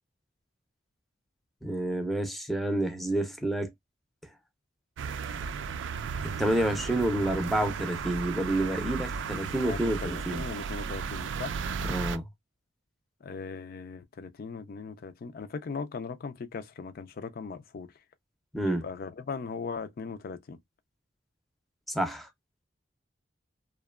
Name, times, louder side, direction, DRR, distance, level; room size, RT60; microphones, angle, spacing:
voice 1, 1.6-3.7 6.4-10.4 11.8-12.2 18.5-18.8 21.9-22.3, right 1 dB, ahead, 0.5 m, -29 dB
russia traffic suburbs autumn, 5.0-12.2, right 5 dB, 80° right, 0.3 m, -35 dB
voice 2, 9.6-11.6 13.2-17.9 18.6-20.6, left 5 dB, 55° left, 0.4 m, -39 dB
2.8 x 2.2 x 2.2 m
head